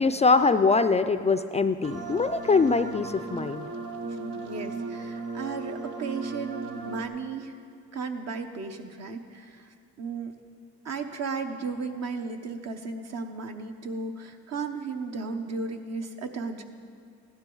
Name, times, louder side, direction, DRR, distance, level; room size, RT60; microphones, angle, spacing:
voice 1, 0.0-3.7, left 4 dB, 20° left, 10 dB, 0.3 m, -23 dB
sound 1, 1.8-7.0, right 3 dB, 85° right, 1.1 m, -36 dB
voice 2, 4.0-7.6 7.9-10.3 10.8-16.6, right 4 dB, 60° right, 6 dB, 1.0 m, -35 dB
15.5 x 12.0 x 3.9 m, 2.3 s
cardioid pair, 90°, 30 cm